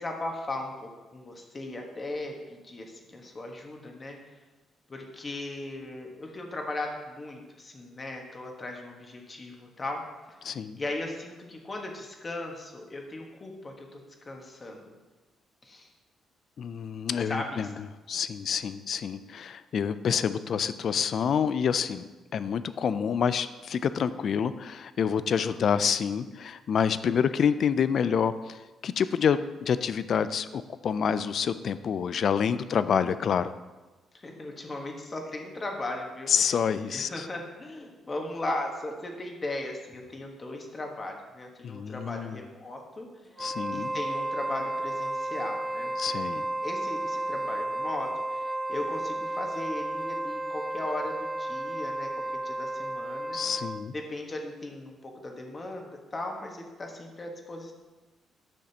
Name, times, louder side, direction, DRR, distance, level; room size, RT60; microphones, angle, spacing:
voice 1, 0.0-4.2 4.9-10.0 10.7-14.0 14.2-14.8 15.6-15.9 17.3-17.5 25.3-25.6 32.7-32.9 34.1-36.3 36.9-43.1 43.7-45.9 46.6-48.4 48.7-53.4 53.9-57.7, left 2 dB, 30° left, 2 dB, 1.4 m, -37 dB
voice 2, 10.4-10.8 16.6-17.7 18.1-33.5 36.3-37.3 41.6-42.4 43.4-43.9 46.0-46.5 53.3-53.9, left 7 dB, 60° left, 14 dB, 0.4 m, -28 dB
Wind instrument woodwind instrument, 43.3-53.9, right 1 dB, 10° right, 1.1 m, -33 dB
9.9 x 6.4 x 2.9 m, 1.2 s
cardioid pair, 90°, 0 cm